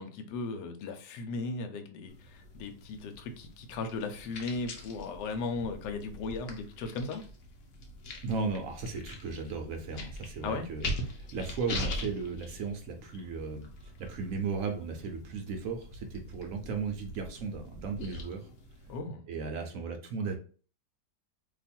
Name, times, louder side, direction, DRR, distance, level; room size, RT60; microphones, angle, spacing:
voice 1, 0.0-7.2 10.4-10.7 18.9-19.2, left 3 dB, 75° left, 6 dB, 1.2 m, -37 dB
sound 1, 2.1-19.0, left 1 dB, 60° left, 0.9 m, -42 dB
voice 2, 8.2-13.7 14.0-18.5 19.3-20.4, right 4 dB, 65° right, 4 dB, 0.8 m, -36 dB
2.9 x 2.4 x 4.2 m, 0.39 s
omnidirectional pair, 1.9 m